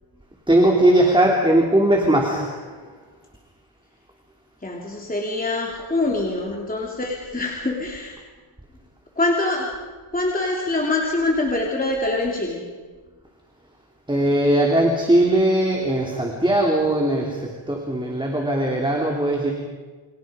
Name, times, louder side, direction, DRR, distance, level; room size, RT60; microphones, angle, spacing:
voice 1, 0.5-2.6 14.1-19.5, right 1 dB, 10° right, 0 dB, 3.1 m, -19 dB
voice 2, 4.6-8.2 9.2-9.7 10.1-12.7, left 2 dB, 15° left, -1 dB, 3.1 m, -24 dB
29.5 x 26.0 x 5.1 m, 1.4 s
wide cardioid pair, 130°, 50 cm